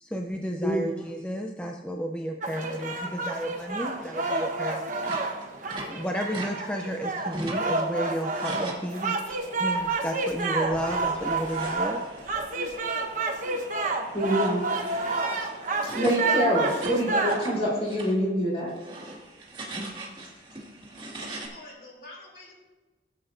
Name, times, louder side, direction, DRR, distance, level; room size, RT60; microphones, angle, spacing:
voice 1, 0.0-5.2 5.9-12.0, equal, 5° left, 2 dB, 0.5 m, -32 dB
sound 1, 2.4-17.6, right 3 dB, 45° right, 1.1 m, -29 dB
sound 2, 5.0-6.5 6.8-7.8 8.1-9.3 9.6-9.9 10.3-17.6 17.8-18.1 18.6-21.5, right 2 dB, 25° right, 2.0 m, -41 dB
voice 2, 14.1-14.6 15.9-18.7, equal, 35° left, -5 dB, 3.6 m, -25 dB
voice 3, 21.2-22.5, left 2 dB, 55° left, -3 dB, 3.0 m, -47 dB
16.5 x 7.9 x 2.6 m, 1.2 s
head